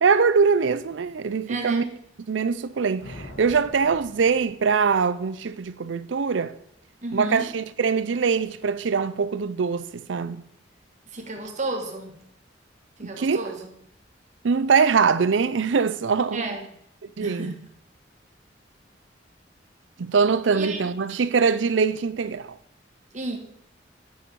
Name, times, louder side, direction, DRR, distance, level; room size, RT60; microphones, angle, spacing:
voice 1, 0.0-1.8 2.3-6.5 7.1-10.4 13.0-13.4 14.4-16.5 17.2-17.6 20.0-22.6, right 5 dB, 85° right, 0.5 m, -23 dB
voice 2, 1.5-1.9 7.0-7.5 11.1-12.2 13.0-13.7 16.3-16.7 17.2-17.6 20.5-20.8 23.1-23.4, right 2 dB, 40° right, 1.3 m, -32 dB
sound 1, 3.0-5.3, left 1 dB, 90° left, 1.7 m, -44 dB
9.2 x 6.2 x 4.7 m
head